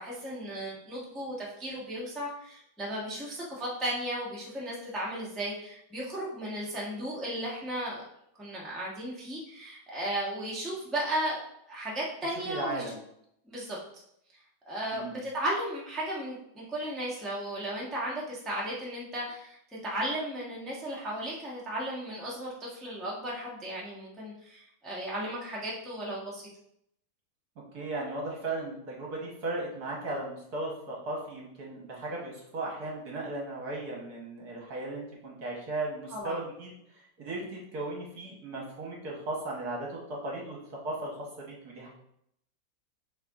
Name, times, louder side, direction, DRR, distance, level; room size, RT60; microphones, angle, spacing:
voice 1, 0.0-8.0 8.3-11.4 11.7-12.8 13.5-13.8 14.7-26.4 36.1-36.4, right 1 dB, ahead, -6 dB, 0.8 m, -35 dB
voice 2, 12.5-13.0 14.9-15.2 27.7-40.6 40.8-41.9, right 2 dB, 60° right, -2 dB, 1.5 m, -36 dB
6.6 x 3.4 x 2.4 m, 0.74 s
omnidirectional pair, 2.1 m